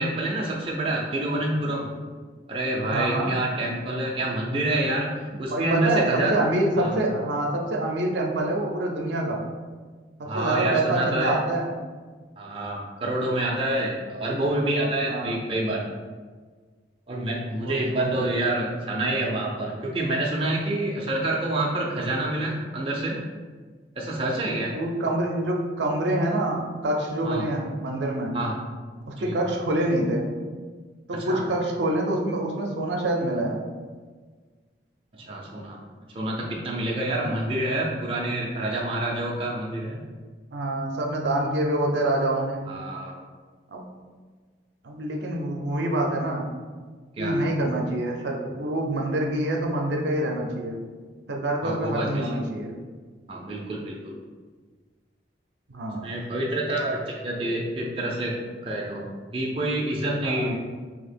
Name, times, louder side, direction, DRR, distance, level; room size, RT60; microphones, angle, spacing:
voice 1, 0.0-1.9 2.5-5.1 5.4-6.3 6.8-7.0 10.2-11.4 12.4-15.8 17.1-23.2 24.0-24.7 27.2-27.5 28.3-28.6 29.2-29.3 31.3-31.4 35.2-35.8 36.1-40.0 42.7-43.2 47.2-47.4 51.6-52.4 53.3-54.2 56.0-58.4 58.6-60.6, right 1 dB, 30° right, -3 dB, 0.5 m, -27 dB
voice 2, 2.9-3.3 5.3-9.4 10.2-11.7 15.1-15.4 17.6-18.3 24.7-28.4 29.1-30.3 31.1-33.6 37.1-37.4 40.5-42.6 43.7-43.8 44.8-46.5 47.2-50.8 51.3-52.8 55.7-56.1 60.1-60.6, right 1 dB, 75° right, 1 dB, 0.6 m, -26 dB
2.9 x 2.8 x 4.3 m, 1.5 s
head